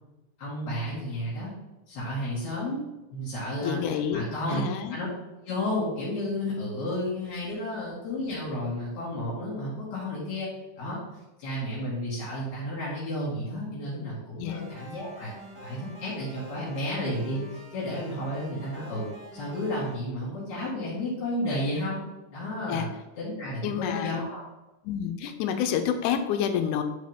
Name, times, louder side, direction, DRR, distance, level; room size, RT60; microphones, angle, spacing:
voice 1, 0.4-1.5 1.9-2.8 3.1-4.6 4.9-5.1 5.4-10.5 10.8-11.0 11.4-15.3 15.6-22.1 22.3-22.9 23.2-24.4, left 1 dB, 70° left, -8 dB, 3.4 m, -32 dB
voice 2, 3.6-4.2 4.5-5.0 14.4-14.6 22.7-22.9 23.6-24.2 24.9-26.8, left 8 dB, 85° left, 7 dB, 2.1 m, -28 dB
sound 1, 14.5-19.9, right 1 dB, 5° right, 1.4 m, -46 dB
8.9 x 4.1 x 3.6 m, 0.99 s
omnidirectional pair, 3.5 m